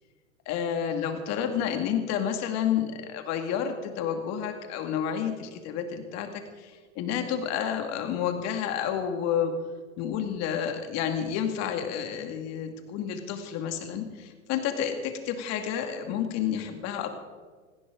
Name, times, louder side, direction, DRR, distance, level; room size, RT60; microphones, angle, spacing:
voice 1, 0.5-9.5 10.0-17.1, left 8 dB, 40° left, 6 dB, 2.4 m, -30 dB
19.0 x 16.5 x 3.9 m, 1.5 s
hypercardioid pair, 115°, 41 cm